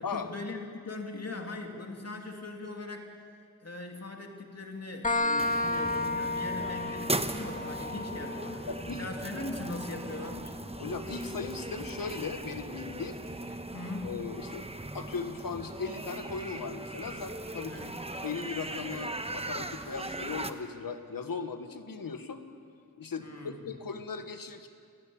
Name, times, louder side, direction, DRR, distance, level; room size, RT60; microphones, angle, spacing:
voice 1, 0.0-3.1 3.6-10.5 13.7-14.1 17.7-18.0 23.2-23.6, left 2 dB, 50° left, 2 dB, 2.9 m, -40 dB
sound 1, 5.0-12.5, left 2 dB, 25° left, 1.9 m, -34 dB
sound 2, 5.4-20.5, right 2 dB, 20° right, 1.1 m, -39 dB
voice 2, 8.7-9.0 10.8-13.2 13.5-13.6 14.0-14.7 14.9-17.8 18.2-22.4 23.0-24.7, left 5 dB, 85° left, 8 dB, 1.4 m, -38 dB
29.5 x 11.5 x 8.6 m, 2.2 s
cardioid pair, 45°, 33 cm